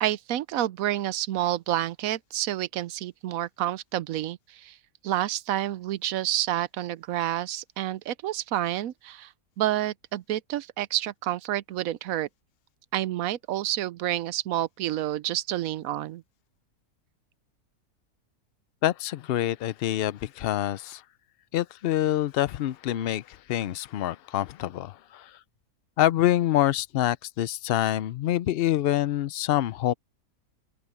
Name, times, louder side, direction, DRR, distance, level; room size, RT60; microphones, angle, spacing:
voice 1, 0.0-4.8 5.0-12.3 12.9-16.2, right 13 dB, 75° right, 1.0 m, -29 dB
voice 2, 18.8-21.0 21.5-25.4 26.0-29.9, left 13 dB, 85° left, 0.5 m, -26 dB
omnidirectional pair, 1.6 m